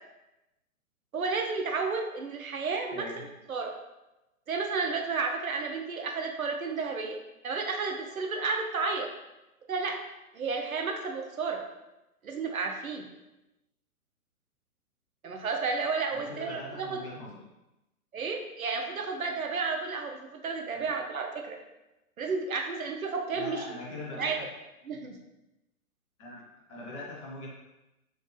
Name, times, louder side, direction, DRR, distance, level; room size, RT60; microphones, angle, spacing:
voice 1, 1.1-3.0 3.5-3.7 4.5-7.2 7.4-9.1 9.7-10.0 10.3-11.6 12.2-13.1 15.2-17.0 18.1-21.6 22.2-23.6 24.1-24.4 24.9-25.2, right 4 dB, 65° right, 2 dB, 0.7 m, -32 dB
voice 2, 2.9-3.3 16.1-17.4 20.7-20.9 23.3-24.5 26.2-27.5, left 2 dB, 20° left, -5 dB, 0.7 m, -42 dB
4.3 x 2.6 x 3.2 m, 0.96 s
figure-of-eight pair, 120°, 45 cm